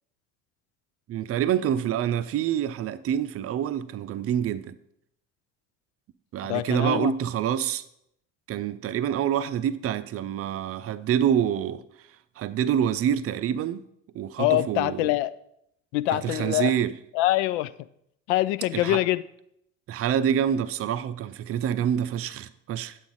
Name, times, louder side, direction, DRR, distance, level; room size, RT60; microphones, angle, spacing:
voice 1, 1.1-4.8 6.3-7.8 8.5-11.8 12.4-13.8 14.1-15.1 16.1-16.9 18.7-19.0 19.9-23.0, right 9 dB, 35° right, 0.6 m, -26 dB
voice 2, 6.5-7.1 14.4-15.3 15.9-16.8 17.1-17.7 18.3-19.2, left 16 dB, 60° left, 0.5 m, -24 dB
9.7 x 8.3 x 3.9 m
figure-of-eight pair, 55°, 40 cm